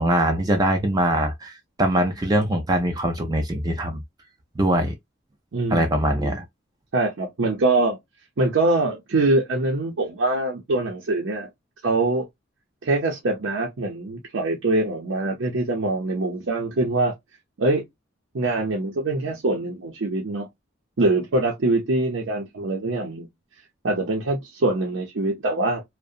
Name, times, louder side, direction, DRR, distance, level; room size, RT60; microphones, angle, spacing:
voice 1, 0.0-4.0 4.6-4.9 5.7-6.4, right 1 dB, 20° right, 0.4 m, -22 dB
voice 2, 5.5-6.0 6.9-8.0 8.4-11.5 11.8-12.3 12.8-17.1 17.6-17.8 18.3-20.5 21.0-23.3 23.8-25.8, right 2 dB, 85° right, 0.6 m, -23 dB
2.7 x 2.1 x 2.3 m
head